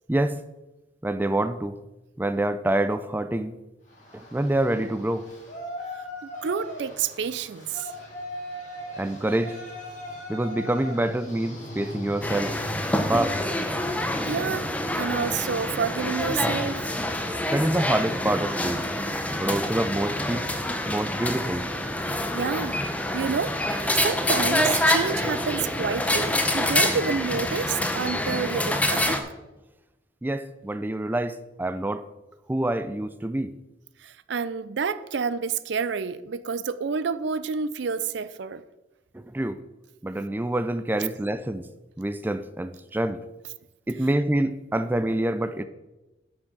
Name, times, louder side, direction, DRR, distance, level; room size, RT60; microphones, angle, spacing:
voice 1, 0.1-0.4 1.0-1.7 2.2-3.5 4.1-5.3 9.0-9.6 10.3-12.5 13.1-13.4 17.5-18.9 19.4-20.5 20.9-21.7 30.2-32.1 32.5-33.5 39.1-39.6 40.0-41.7 42.0-43.2 43.9-45.6, right 1 dB, 10° right, 0.3 m, -26 dB
Yell, 3.9-14.1, left 1 dB, 40° left, 3.0 m, -39 dB
voice 2, 6.2-7.9 14.3-16.8 22.3-22.8 23.1-29.2 34.0-38.6 41.0-41.1, right 5 dB, 65° right, 0.5 m, -29 dB
sound 1, 12.2-29.2, left 1 dB, 5° left, 0.8 m, -26 dB
8.3 x 6.2 x 6.5 m
head